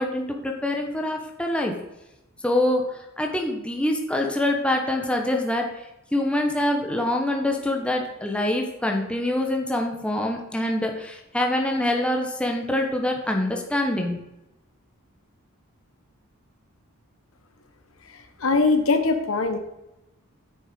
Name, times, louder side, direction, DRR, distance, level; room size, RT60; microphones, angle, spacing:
voice 1, 0.0-1.7 2.4-5.7 6.1-14.2, left 1 dB, 5° left, 2 dB, 1.3 m, -25 dB
voice 2, 18.1-19.6, left 3 dB, 65° left, 8 dB, 1.0 m, -22 dB
9.5 x 6.4 x 5.3 m, 0.92 s
head